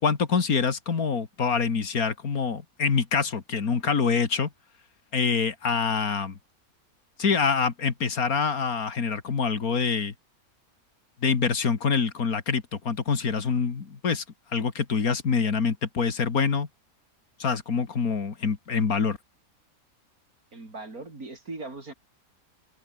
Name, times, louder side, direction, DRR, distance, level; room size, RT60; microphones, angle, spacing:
voice 1, 0.0-4.5 5.1-6.4 7.2-10.1 11.2-14.2 14.5-16.7 17.4-19.2, left 5 dB, 75° left, 2.5 m, -25 dB
voice 2, 20.5-21.9, right 2 dB, 75° right, 5.2 m, -39 dB
omnidirectional pair, 1.5 m